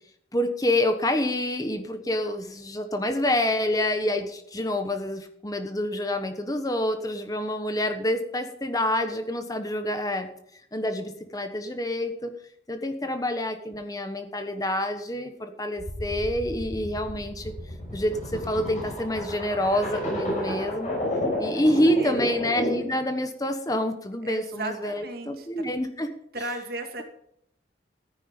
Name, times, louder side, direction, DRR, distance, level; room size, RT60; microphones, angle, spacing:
voice 1, 0.3-10.3 10.7-12.3 12.7-17.5 17.9-21.0 21.4-26.1, left 1 dB, 20° left, 7 dB, 1.1 m, -27 dB
sound 1, 15.8-23.0, equal, 40° left, 6.0 m, -31 dB
voice 2, 21.5-22.2 24.2-25.7 26.3-27.0, right 2 dB, 55° right, 5 dB, 2.3 m, -36 dB
14.0 x 10.0 x 5.2 m, 0.75 s
head